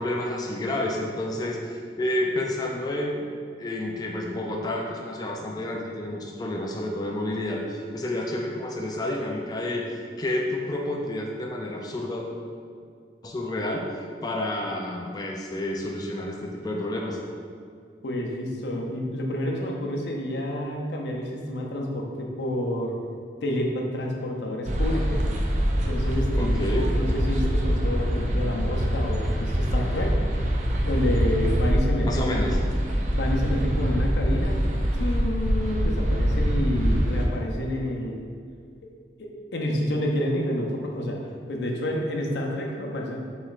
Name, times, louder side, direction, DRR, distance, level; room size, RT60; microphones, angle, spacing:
voice 1, 0.0-3.3 3.6-12.3 13.2-13.9 14.2-17.2 26.4-26.9 32.0-32.6, left 1 dB, 20° left, 1 dB, 0.3 m, -30 dB
voice 2, 18.0-23.0 23.4-25.3 25.9-30.2 30.8-32.5 33.1-38.2 39.2-41.2 41.5-43.2, left 1 dB, 80° left, 0 dB, 0.6 m, -29 dB
sound 1, 24.7-37.3, equal, 40° right, 0.5 m, -24 dB
6.0 x 3.1 x 2.4 m, 2.2 s
head